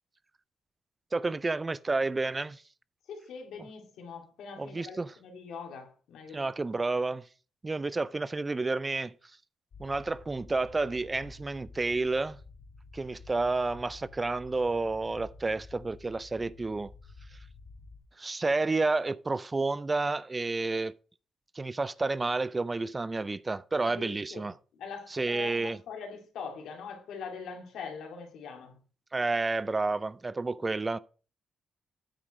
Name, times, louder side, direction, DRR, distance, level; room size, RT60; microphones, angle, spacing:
voice 1, 1.1-2.6 4.6-5.1 6.3-7.2 7.6-9.1 9.8-12.4 12.9-16.9 18.2-21.0 21.5-24.5 25.1-25.8 29.1-31.0, right 3 dB, 25° right, 0.4 m, -30 dB
voice 2, 3.1-6.8 13.0-13.1 23.8-28.8, left 5 dB, 85° left, 2.3 m, -43 dB
sound 1, 9.7-18.0, left 3 dB, 60° left, 2.8 m, -51 dB
8.8 x 4.9 x 5.4 m
cardioid pair, 80°, 0 cm